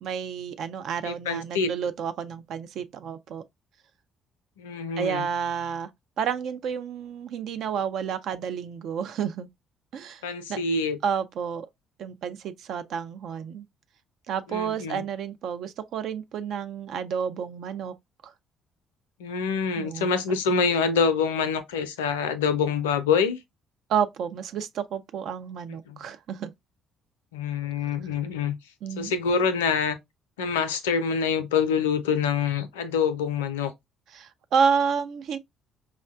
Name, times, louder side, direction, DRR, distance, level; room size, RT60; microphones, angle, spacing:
voice 1, 0.0-3.4 5.0-5.9 6.2-9.5 9.9-10.2 10.5-10.6 11.0-11.7 12.0-13.7 14.3-17.9 18.2-18.3 19.8-20.2 23.9-26.5 28.8-29.1 34.1-35.4, right 7 dB, 60° right, 0.3 m, -30 dB
voice 2, 1.0-1.7 4.6-5.3 10.2-11.0 14.5-15.0 19.2-23.4 25.9-26.0 27.3-28.5 29.0-30.0 30.4-33.7, left 6 dB, 75° left, 0.4 m, -26 dB
4.6 x 2.1 x 2.3 m
figure-of-eight pair, 50°, 0 cm